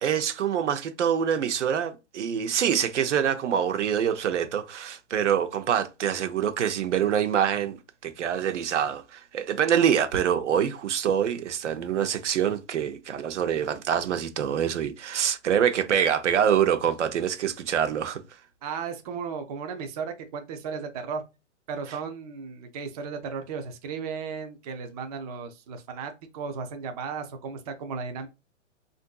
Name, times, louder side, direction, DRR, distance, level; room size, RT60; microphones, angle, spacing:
voice 1, 0.0-7.8 8.0-18.2, right 8 dB, 75° right, 0.7 m, -25 dB
voice 2, 18.6-21.2 21.7-28.3, right 5 dB, 35° right, 0.4 m, -35 dB
3.6 x 2.6 x 2.2 m
hypercardioid pair, 135°, 37 cm